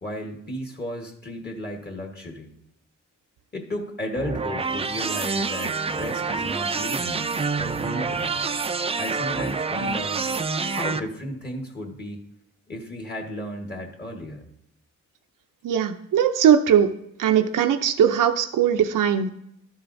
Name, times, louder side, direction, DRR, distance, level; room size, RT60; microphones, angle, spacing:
voice 1, 0.0-2.5 3.5-8.6 9.0-10.2 10.7-12.2 12.7-14.4, left 1 dB, 30° left, 2 dB, 1.3 m, -34 dB
sound 1, 4.2-11.0, right 4 dB, 20° right, 0.4 m, -27 dB
voice 2, 15.6-16.9 17.2-19.3, right 8 dB, 80° right, 7 dB, 0.6 m, -20 dB
12.5 x 10.0 x 2.6 m, 0.77 s
wide cardioid pair, 125°, 31 cm